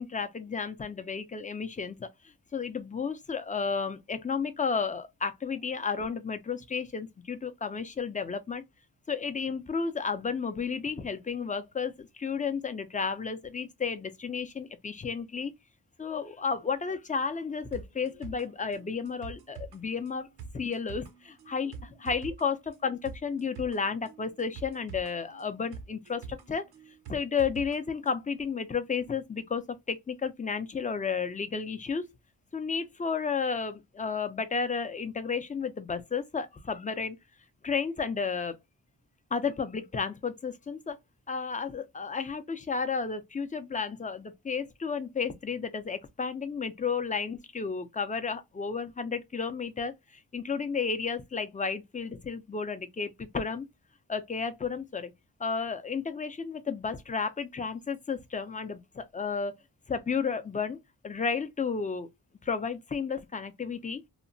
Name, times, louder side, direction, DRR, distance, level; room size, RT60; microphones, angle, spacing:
voice 1, 0.0-2.1 2.5-8.6 9.1-15.5 16.0-20.3 20.5-26.6 27.1-32.1 32.5-37.2 37.6-38.6 39.3-41.0 41.3-49.9 50.3-53.7 54.1-55.1 55.4-59.5 59.9-60.8 61.0-62.1 62.4-64.0, left 5 dB, 20° left, 0.4 m, -32 dB
sound 1, 17.7-27.8 28.1-28.2, right 4 dB, 85° right, 0.6 m, -45 dB
2.8 x 2.1 x 2.6 m
wide cardioid pair, 90°, 37 cm